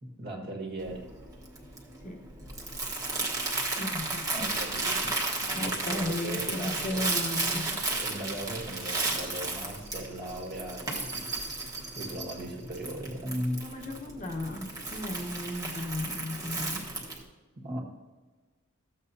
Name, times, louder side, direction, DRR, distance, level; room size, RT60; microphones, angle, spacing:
voice 1, 0.0-1.1 4.3-5.2 5.6-7.0 8.0-11.4 11.9-14.0 17.5-17.8, right 1 dB, 45° right, -1 dB, 1.7 m, -38 dB
Crumpling crinkling, 0.8-17.2, right 2 dB, 15° right, 1.4 m, -34 dB
voice 2, 3.7-4.5 5.5-7.8 13.5-17.0, left 1 dB, 35° left, 1 dB, 1.1 m, -35 dB
13.5 x 7.9 x 2.7 m, 1.3 s
head